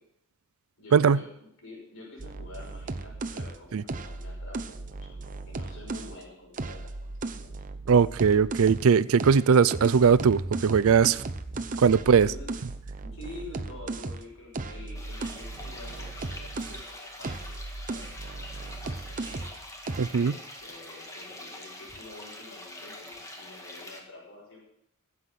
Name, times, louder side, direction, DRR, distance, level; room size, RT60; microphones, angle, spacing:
voice 1, 0.8-7.5 11.9-12.5 13.0-19.4 20.1-24.6, left 2 dB, 60° left, 5.6 m, -48 dB
sound 1, 2.2-6.2 6.5-8.9 9.2-16.9 17.2-19.6 19.9-20.2, right 2 dB, 35° right, 0.7 m, -36 dB
voice 2, 7.9-11.2 11.8-12.3 20.0-20.3, right 6 dB, 65° right, 0.4 m, -20 dB
sound 2, 14.9-24.0, left 1 dB, 15° left, 1.8 m, -44 dB
15.0 x 7.9 x 5.8 m
head